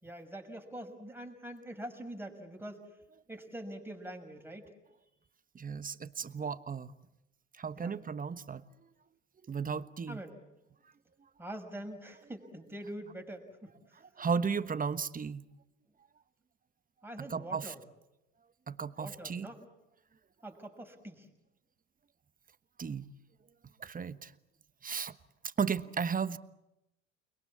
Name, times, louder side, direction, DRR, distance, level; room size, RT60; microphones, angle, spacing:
voice 1, 0.0-2.9 3.3-4.7 7.8-8.0 10.1-10.4 11.4-13.7 17.0-17.8 19.0-19.7 20.4-21.3, right 1 dB, 5° right, 5.7 m, -44 dB
voice 2, 5.5-6.9 7.6-8.6 9.5-10.2 14.0-15.4 17.2-17.7 18.7-19.5 22.8-23.1 23.8-24.3 24.8-25.1 25.4-26.4, right 6 dB, 20° right, 1.2 m, -35 dB
29.5 x 21.5 x 8.7 m
hypercardioid pair, 70°, 38 cm